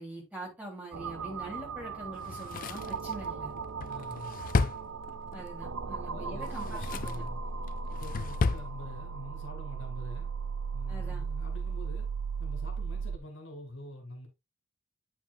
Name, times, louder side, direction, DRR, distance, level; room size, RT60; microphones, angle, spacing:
voice 1, 0.0-3.6 5.3-7.3 10.9-11.2, right 1 dB, 5° right, 2.8 m, -44 dB
sound 1, 0.9-13.2, right 5 dB, 80° right, 0.6 m, -37 dB
Drawer open or close, 2.2-5.5 6.4-7.3 7.7-8.7 9.0-9.1, left 4 dB, 40° left, 0.3 m, -33 dB
voice 2, 3.8-4.4 5.7-5.8 6.1-7.4 7.9-10.3 10.7-12.1 12.4-14.3, left 1 dB, 60° left, 2.4 m, -46 dB
8.9 x 6.1 x 2.3 m
head